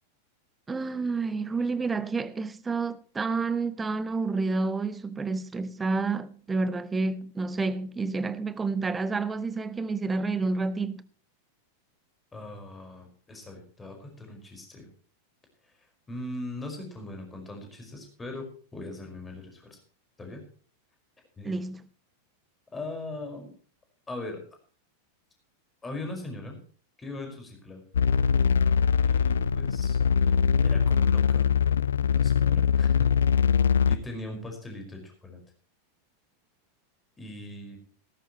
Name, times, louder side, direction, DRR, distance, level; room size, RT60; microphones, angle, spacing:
voice 1, 0.7-11.0 21.4-21.8, right 3 dB, 15° right, 0.9 m, -29 dB
voice 2, 12.3-14.9 15.6-19.8 20.2-20.4 21.4-21.6 22.7-23.5 24.1-24.4 25.8-26.6 27.0-27.8 29.0-30.4 30.6-31.5 32.1-33.1 33.9-35.4 37.2-37.8, left 2 dB, 15° left, 5.2 m, -40 dB
sound 1, 27.9-34.0, left 7 dB, 65° left, 0.5 m, -22 dB
17.0 x 14.0 x 3.1 m
figure-of-eight pair, 90°, 0 cm